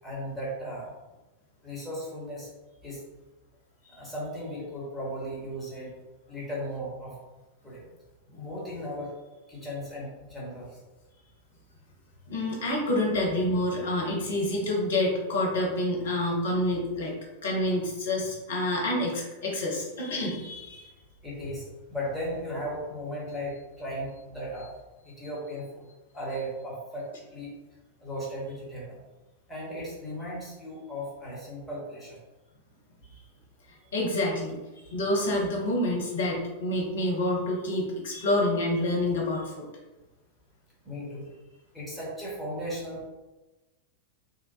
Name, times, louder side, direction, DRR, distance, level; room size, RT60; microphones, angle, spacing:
voice 1, 0.0-0.9 1.6-2.5 2.8-3.0 3.9-5.9 6.3-7.1 7.6-7.9 8.4-9.2 9.5-10.8 21.2-21.6 21.9-24.7 25.0-25.8 26.1-27.5 28.0-29.0 29.5-32.2 40.8-41.3 41.7-43.1, equal, 5° left, -7 dB, 1.0 m, -36 dB
voice 2, 12.3-17.1 17.4-20.9 33.9-34.5 34.9-39.7, left 1 dB, 60° left, -1 dB, 0.6 m, -28 dB
2.7 x 2.1 x 2.6 m, 1.1 s
figure-of-eight pair, 90°, 0 cm